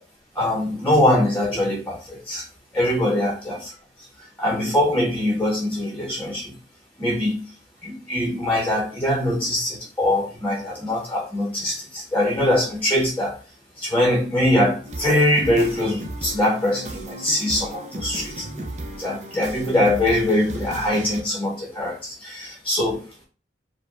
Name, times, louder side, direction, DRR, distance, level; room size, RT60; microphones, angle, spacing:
voice 1, 0.3-2.4 2.7-3.6 4.2-6.5 7.0-7.4 7.8-13.4 13.8-18.7 19.0-23.2, left 1 dB, 10° left, -1 dB, 1.0 m, -22 dB
sound 1, 14.9-21.2, right 1 dB, 40° right, 0.7 m, -35 dB
5.0 x 2.3 x 4.6 m, 0.37 s
head